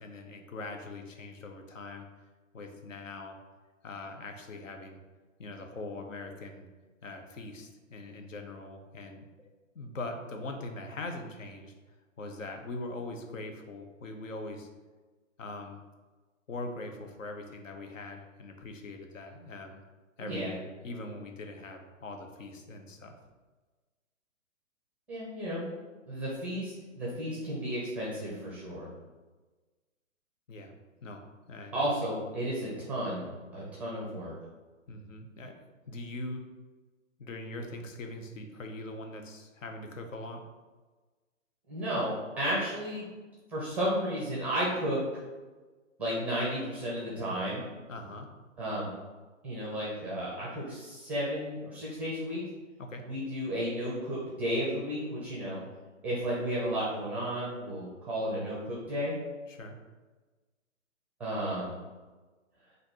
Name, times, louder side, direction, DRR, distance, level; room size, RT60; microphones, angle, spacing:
voice 1, 0.0-2.0 2.5-3.4 3.8-5.0 5.4-6.7 7.0-11.7 12.2-14.7 15.4-15.8 16.5-19.8 20.2-23.1 30.5-30.7 31.0-31.2 31.5-32.1 34.9-35.5 35.9-36.4 37.2-40.4 47.9-48.3 52.8-53.0 59.5-59.7, left 2 dB, 75° left, 4 dB, 0.9 m, -42 dB
voice 2, 20.2-20.5 25.1-25.6 26.1-28.9 31.7-33.3 33.5-34.3 41.7-43.1 43.5-45.0 46.0-47.6 48.6-48.9 49.4-52.4 53.0-55.6 56.0-59.1 61.2-61.7, equal, 5° right, -6 dB, 0.5 m, -33 dB
4.2 x 2.6 x 4.2 m, 1.3 s
hypercardioid pair, 135°, 39 cm